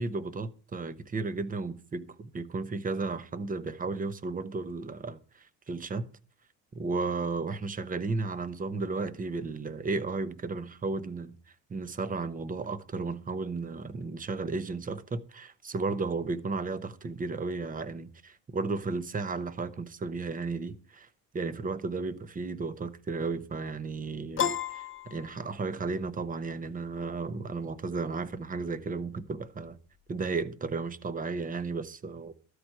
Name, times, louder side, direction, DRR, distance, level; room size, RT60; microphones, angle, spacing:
voice 1, 0.0-6.1 6.7-11.4 11.7-21.1 21.3-29.8 30.1-32.3, right 4 dB, 20° right, 0.9 m, -34 dB
Piano, 24.4-25.9, left 9 dB, 30° left, 0.8 m, -32 dB
13.0 x 4.8 x 7.7 m
cardioid pair, 105°, 39 cm